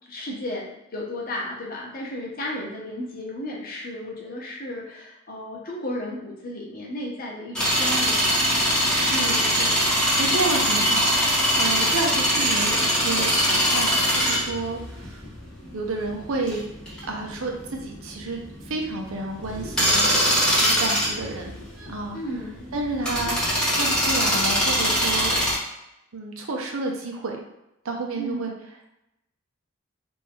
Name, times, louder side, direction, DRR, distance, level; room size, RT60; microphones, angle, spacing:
voice 1, 0.1-8.5 22.1-22.7 28.2-28.5, left 1 dB, 40° left, -3 dB, 0.8 m, -34 dB
sound 1, 7.5-25.5, equal, 5° left, 1.0 m, -22 dB
voice 2, 8.9-15.2 15.7-16.6 17.1-22.2 22.7-23.4 23.6-25.4 26.1-27.4 27.8-28.5, right 3 dB, 75° right, 2 dB, 0.6 m, -31 dB
3.2 x 2.6 x 3.5 m, 0.87 s
head